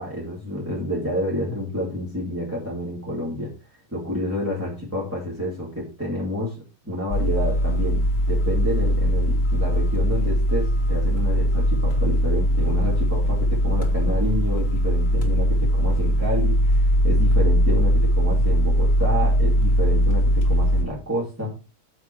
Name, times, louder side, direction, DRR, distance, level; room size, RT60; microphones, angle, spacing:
voice 1, 0.0-3.5 3.9-6.6 6.8-21.5, left 1 dB, 10° right, -5 dB, 2.7 m, -29 dB
sound 1, 7.1-20.8, equal, 60° left, 2.1 m, -20 dB
7.8 x 6.9 x 4.6 m, 0.33 s
omnidirectional pair, 1.6 m